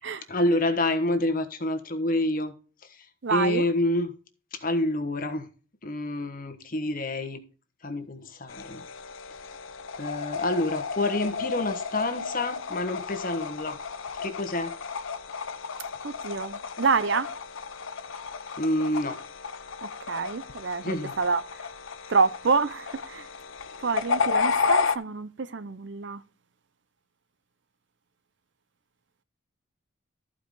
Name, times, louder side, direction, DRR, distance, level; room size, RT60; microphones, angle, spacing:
voice 1, 0.3-2.5 2.9-3.0 3.3-4.1 4.5-5.5 5.8-7.4 7.8-8.8 10.0-13.8 14.2-14.7 18.6-19.2 20.8-21.1, left 1 dB, 40° left, 1.2 m, -28 dB
voice 2, 3.2-3.7 16.0-17.3 20.1-21.4 22.1-23.3 23.8-26.2, right 4 dB, 60° right, 0.6 m, -27 dB
sound 1, 8.5-25.0, left 5 dB, 75° left, 0.7 m, -32 dB
14.0 x 4.9 x 3.8 m
head